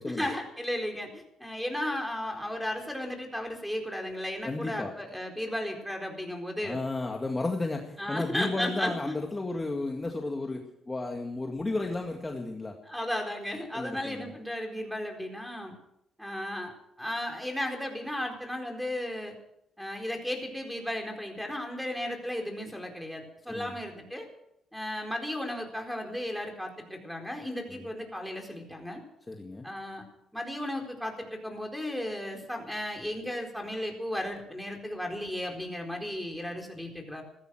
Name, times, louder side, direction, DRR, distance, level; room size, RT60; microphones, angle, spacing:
voice 1, 0.0-6.8 8.0-9.1 12.8-15.7 16.2-19.3 19.8-24.3 24.7-29.0 29.6-30.0 30.3-37.2, left 1 dB, ahead, 1 dB, 4.3 m, -35 dB
voice 2, 4.4-4.9 6.6-12.8 13.7-14.3 23.5-23.8 27.7-27.9 29.3-29.6, left 2 dB, 20° left, 2 dB, 2.0 m, -33 dB
16.0 x 13.5 x 6.2 m, 0.80 s
cardioid pair, 90°, 0 cm